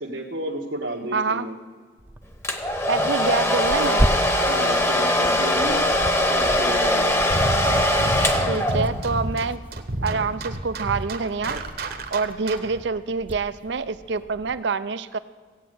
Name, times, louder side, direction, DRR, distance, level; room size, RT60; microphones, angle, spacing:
voice 1, 0.0-1.5 4.5-5.9 6.3-7.2, right 1 dB, 85° right, -4 dB, 1.5 m, -31 dB
voice 2, 1.1-1.5 2.9-4.0 8.4-9.6 10.0-11.6 12.1-15.2, right 4 dB, 65° right, 13 dB, 0.5 m, -26 dB
Tearing, 2.0-14.6, right 1 dB, 10° right, 0.3 m, -34 dB
Domestic sounds home sounds, 2.4-9.1, left 1 dB, 15° left, 1.0 m, -21 dB
sound 1, 7.3-12.8, right 2 dB, 50° right, 1.1 m, -29 dB
15.5 x 8.9 x 7.8 m, 1.5 s
head